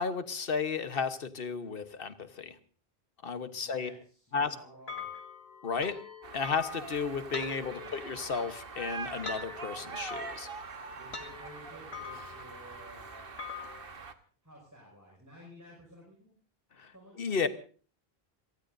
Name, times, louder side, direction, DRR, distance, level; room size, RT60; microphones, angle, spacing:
voice 1, 0.0-2.6 3.2-3.9 4.3-4.5 5.6-5.9 6.3-10.5 16.8-16.9 17.2-17.5, left 5 dB, 65° left, 10 dB, 1.3 m, -33 dB
voice 2, 3.5-5.1 7.6-7.9 10.9-13.5 14.4-16.3 16.9-17.3, equal, 15° right, -1 dB, 5.7 m, -53 dB
sound 1, 4.9-13.8, left 5 dB, 80° left, 2.1 m, -44 dB
sound 2, 6.2-14.1, right 4 dB, 65° right, 1.4 m, -43 dB
27.0 x 18.0 x 2.7 m, 0.41 s
omnidirectional pair, 1.0 m